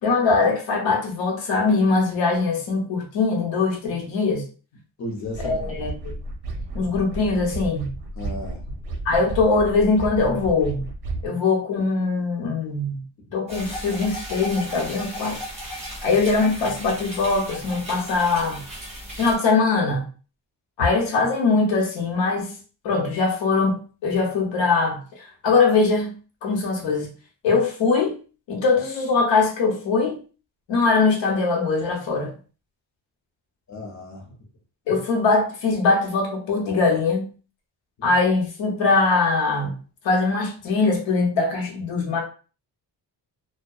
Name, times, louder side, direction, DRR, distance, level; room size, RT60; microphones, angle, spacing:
voice 1, 0.0-4.4 5.4-6.1 6.7-7.9 9.0-10.9 11.2-13.0 13.3-15.4 16.0-18.6 19.2-20.1 20.8-22.5 22.8-26.1 26.4-27.1 27.4-28.1 28.5-30.2 30.7-32.3 34.9-37.3 38.0-39.8 40.0-42.2, left 4 dB, 90° left, 1 dB, 0.9 m, -22 dB
voice 2, 5.0-5.8 8.2-8.7 33.7-34.3, left 1 dB, 40° left, 1 dB, 0.7 m, -34 dB
sound 1, 5.2-11.3, right 2 dB, 60° right, 0.6 m, -33 dB
sound 2, 13.5-19.4, equal, 15° right, 1.1 m, -35 dB
2.6 x 2.2 x 2.2 m, 0.36 s
cardioid pair, 165°, 44 cm